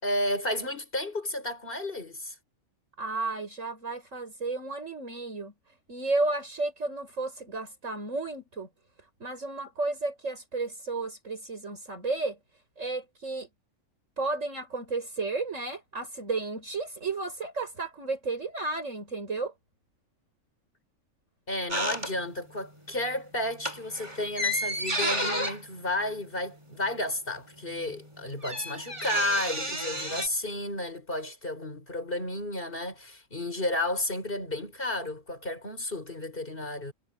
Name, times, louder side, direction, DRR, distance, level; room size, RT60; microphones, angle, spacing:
voice 1, 0.0-2.4 21.5-36.9, left 1 dB, 40° left, 5.3 m, -32 dB
voice 2, 3.0-5.5 5.9-8.7 9.2-12.4 12.8-13.5 14.2-19.5, right 3 dB, 65° right, 6.0 m, -32 dB
sound 1, 21.7-22.6 22.9-23.2 23.5-27.0 27.3-27.4 27.6-30.3, equal, 20° right, 4.6 m, -32 dB
omnidirectional pair, 1.4 m